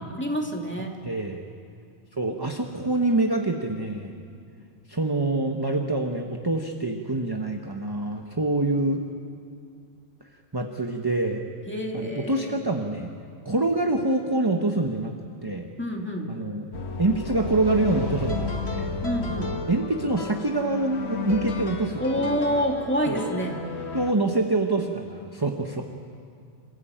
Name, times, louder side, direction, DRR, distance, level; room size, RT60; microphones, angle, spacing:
voice 1, 0.2-1.0 11.7-12.6 15.8-16.3 19.0-19.5 22.0-23.6, equal, 10° left, 1 dB, 2.4 m, -27 dB
voice 2, 1.0-1.4 2.2-4.2 4.9-9.0 10.5-11.4 11.9-13.1 13.4-15.1 15.4-15.7 16.3-16.6 17.0-18.9 19.3-22.6 23.1-23.2 23.9-25.8, right 2 dB, 20° right, 3 dB, 1.1 m, -26 dB
sound 1, 16.7-24.1, left 4 dB, 65° left, 1.7 m, -32 dB
27.5 x 16.0 x 9.0 m, 2.3 s
omnidirectional pair, 1.2 m